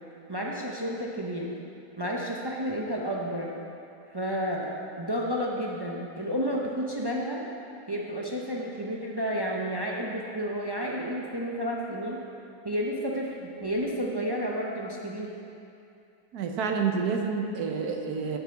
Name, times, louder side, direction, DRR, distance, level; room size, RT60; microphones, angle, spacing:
voice 1, 0.3-1.5 2.0-3.5 4.1-4.7 5.0-7.5 7.9-12.2 12.6-15.4, equal, 30° right, -3 dB, 0.4 m, -31 dB
voice 2, 16.3-18.4, right 5 dB, 70° right, 3 dB, 1.3 m, -28 dB
6.9 x 6.8 x 7.9 m, 2.6 s
omnidirectional pair, 1.8 m